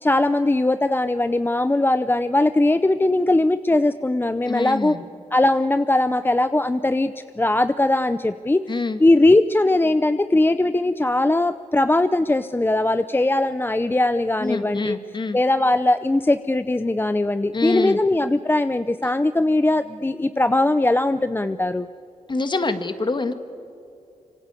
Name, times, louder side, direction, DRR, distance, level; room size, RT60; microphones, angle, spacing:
voice 1, 0.0-5.0 5.3-7.1 7.4-8.6 9.0-15.0 15.3-21.9, left 2 dB, 15° left, 12 dB, 0.6 m, -20 dB
voice 2, 4.5-5.0 8.7-9.0 14.4-15.4 17.5-18.0 22.3-23.3, left 3 dB, 35° left, 9 dB, 1.8 m, -25 dB
25.5 x 25.5 x 8.3 m, 2.6 s
wide cardioid pair, 90°, 13 cm